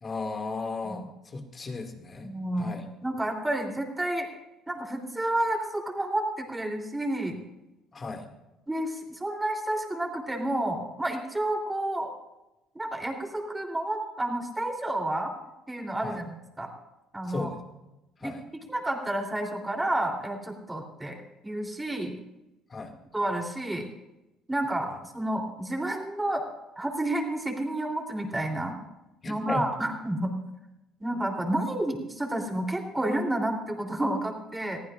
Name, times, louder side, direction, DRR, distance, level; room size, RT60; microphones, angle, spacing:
voice 1, 0.0-2.3 2.6-2.8 7.9-8.3 16.0-16.2 17.3-17.6 18.2-18.4 22.7-22.9 24.9-25.0 29.2-29.7, left 3 dB, 35° left, 4 dB, 2.3 m, -35 dB
voice 2, 2.2-4.3 4.7-7.4 8.7-12.1 12.8-15.3 15.7-16.3 16.6-16.7 17.1-17.5 18.2-18.3 18.7-21.2 21.4-22.1 23.1-23.9 24.5-26.4 26.8-28.8 29.3-30.3 31.0-34.8, right 1 dB, 15° right, 2 dB, 3.5 m, -30 dB
21.5 x 15.0 x 2.6 m, 0.96 s
supercardioid pair, 75°, 0 cm